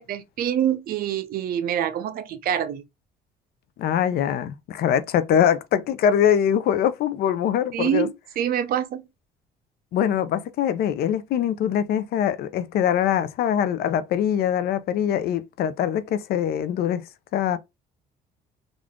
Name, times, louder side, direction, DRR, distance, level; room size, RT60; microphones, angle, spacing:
voice 1, 0.0-2.8 7.7-9.1, right 9 dB, 60° right, 0.6 m, -26 dB
voice 2, 3.8-8.1 9.9-17.0 17.3-17.6, left 9 dB, 70° left, 0.6 m, -23 dB
3.7 x 2.5 x 3.5 m
cardioid pair, 110°, 17 cm